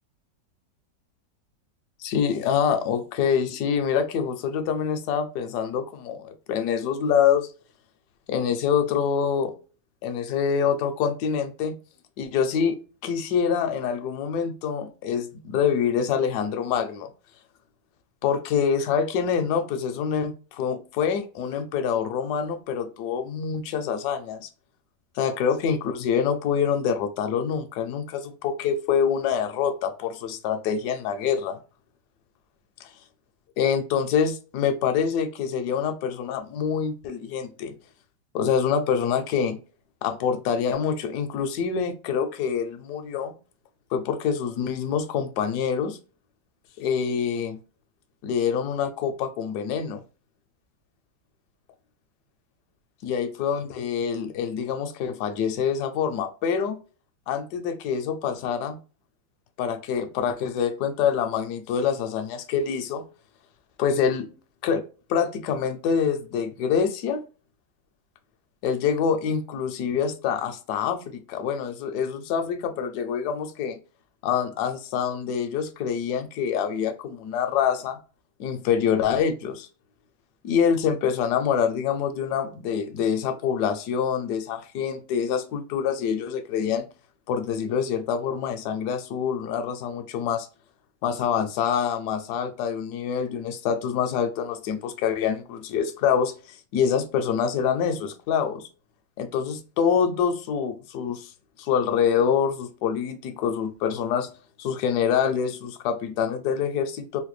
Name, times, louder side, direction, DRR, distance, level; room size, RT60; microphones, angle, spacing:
voice 1, 2.0-7.5 8.3-9.5 10.0-11.7 12.2-12.7 13.0-17.1 18.2-24.5 25.2-31.6 32.8-32.9 33.6-37.8 38.3-39.6 40.0-43.3 43.9-46.0 46.8-47.6 48.2-50.0 53.0-56.8 57.3-58.8 59.6-63.1 63.8-64.3 64.6-64.8 65.1-67.2 68.6-73.8 74.2-78.0 78.4-79.7 80.4-86.8 87.3-90.5 91.0-98.7 99.2-101.3 101.6-104.3 104.6-107.2, left 7 dB, 70° left, 1.0 m, -26 dB
3.8 x 2.2 x 3.1 m
omnidirectional pair, 2.1 m